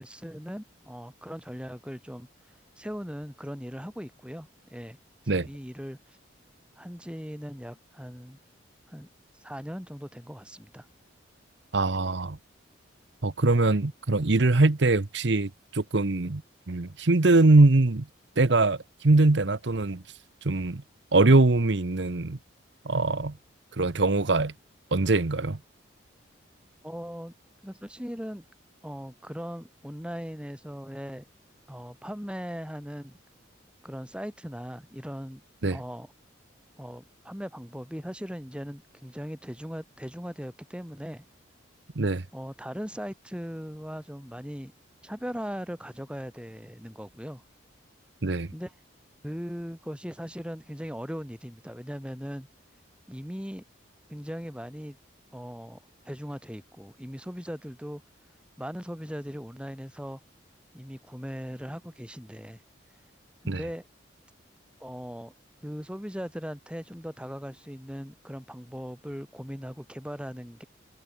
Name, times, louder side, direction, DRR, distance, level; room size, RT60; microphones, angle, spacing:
voice 1, 0.0-2.3 2.8-5.0 5.2-6.2 6.8-8.4 8.9-9.1 9.3-10.9 26.8-27.3 27.6-28.5 28.8-31.2 31.7-33.2 33.8-35.4 35.7-36.1 36.8-41.2 42.3-44.7 45.0-47.4 48.5-48.8 49.2-52.5 53.1-53.6 54.1-55.0 55.3-55.8 56.1-58.0 58.6-60.2 60.7-62.6 63.4-63.9 64.8-65.3 65.6-70.6, equal, 5° right, 5.3 m, -39 dB
voice 2, 11.7-12.4 13.2-16.4 16.7-18.0 18.4-18.8 19.0-20.0 20.4-20.8 21.1-22.4 22.9-23.3 23.8-24.5 24.9-25.6 35.6-35.8 42.0-42.2 48.2-48.5 63.5-63.6, right 2 dB, 65° right, 1.0 m, -22 dB
head